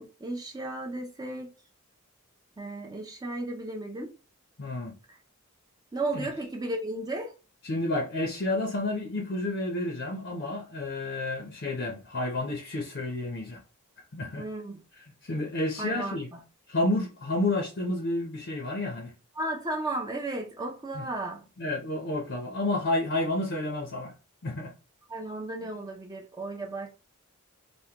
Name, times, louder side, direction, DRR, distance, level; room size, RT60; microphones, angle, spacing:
voice 1, 0.0-1.5 2.6-4.1 5.9-7.3 14.4-14.8 15.8-16.4 19.4-21.4 25.1-26.9, right 2 dB, 15° right, 0.4 m, -34 dB
voice 2, 4.6-4.9 6.1-6.3 7.6-13.6 14.1-14.4 15.2-16.3 16.7-19.1 20.9-21.1 21.6-24.1 24.4-24.7, left 2 dB, 50° left, 0.6 m, -30 dB
3.5 x 2.1 x 2.8 m
head